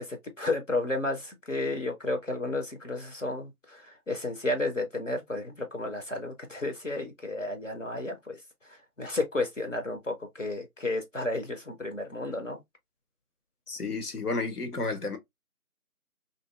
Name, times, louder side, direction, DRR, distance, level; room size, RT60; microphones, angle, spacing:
voice 1, 0.0-8.4 8.7-12.6, left 2 dB, 55° left, 0.7 m, -32 dB
voice 2, 13.7-15.2, left 3 dB, 85° left, 1.0 m, -31 dB
2.7 x 2.5 x 2.2 m
figure-of-eight pair, 180°, 44 cm